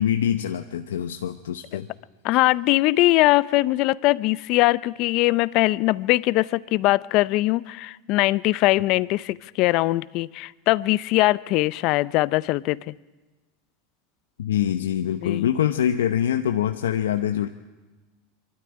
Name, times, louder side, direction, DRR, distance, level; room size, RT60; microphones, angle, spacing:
voice 1, 0.0-1.9 14.4-17.5, left 10 dB, 90° left, 7 dB, 0.8 m, -24 dB
voice 2, 2.2-12.9 15.2-15.5, left 19 dB, 55° left, 19 dB, 0.6 m, -21 dB
24.5 x 13.0 x 9.9 m, 1.2 s
hypercardioid pair, 110°, 0 cm